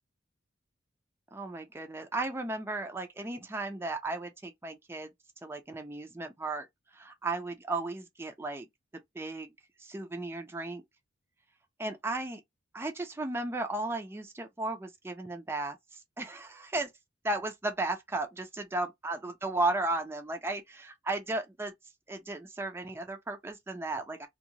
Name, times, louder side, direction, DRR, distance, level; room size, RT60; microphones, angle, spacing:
voice 1, 1.3-5.1 5.4-6.7 6.9-8.7 9.2-9.5 9.8-10.8 11.8-12.4 12.7-15.8 16.2-16.9 17.2-21.7 22.1-24.3, right 2 dB, 15° right, 0.3 m, -35 dB
2.8 x 2.0 x 2.5 m
head